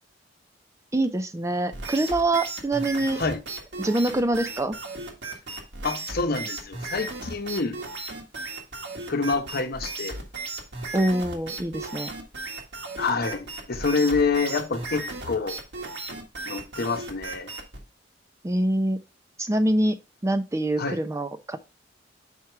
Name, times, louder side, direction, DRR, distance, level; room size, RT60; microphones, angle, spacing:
voice 1, 0.9-3.2 3.8-4.8 10.9-12.1 18.4-19.0 19.4-20.0 20.2-21.6, right 1 dB, 15° right, 0.5 m, -25 dB
sound 1, 1.7-17.8, right 2 dB, 65° right, 1.6 m, -36 dB
voice 2, 5.8-7.8 9.1-10.2 13.0-15.6 16.5-17.5 20.8-21.0, left 4 dB, 55° left, 0.9 m, -27 dB
5.9 x 4.6 x 4.6 m
head